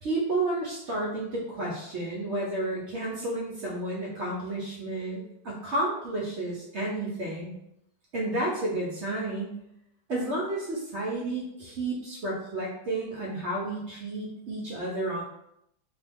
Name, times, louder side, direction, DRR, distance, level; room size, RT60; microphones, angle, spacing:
voice 1, 0.0-7.5 8.1-9.6 10.1-15.2, right 2 dB, 90° right, -5 dB, 0.6 m, -31 dB
2.8 x 2.3 x 3.4 m, 0.78 s
omnidirectional pair, 2.0 m